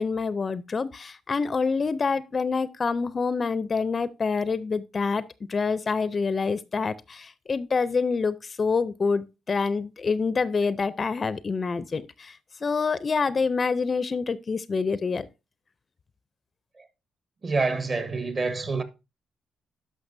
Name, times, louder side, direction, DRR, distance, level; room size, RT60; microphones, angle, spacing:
voice 1, 0.0-5.2 5.5-12.3 12.6-15.3, left 4 dB, 35° left, 0.4 m, -26 dB
voice 2, 17.4-18.8, right 3 dB, 40° right, 1.3 m, -27 dB
11.5 x 5.6 x 2.6 m
cardioid pair, 90°, 0 cm